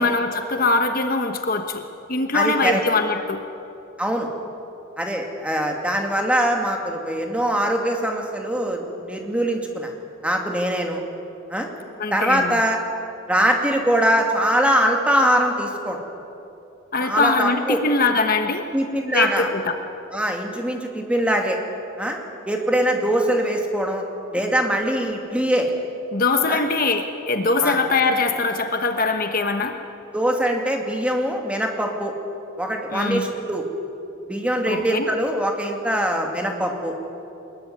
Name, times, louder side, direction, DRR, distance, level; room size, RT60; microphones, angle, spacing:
voice 1, 0.0-3.4 12.0-12.6 16.9-18.7 19.1-19.7 26.1-29.8 32.9-33.3 34.7-35.1, left 3 dB, 45° left, 6 dB, 1.2 m, -22 dB
voice 2, 2.3-2.8 4.0-4.3 5.0-9.9 10.2-11.0 11.5-11.7 12.1-12.8 13.3-16.0 17.0-17.8 18.7-19.5 20.1-21.6 22.0-22.2 22.5-24.0 24.3-25.7 26.5-26.6 27.6-27.8 30.1-32.1 32.6-33.6 34.3-36.9, equal, 5° right, 2 dB, 2.4 m, -22 dB
23.5 x 21.5 x 9.6 m, 2.8 s
head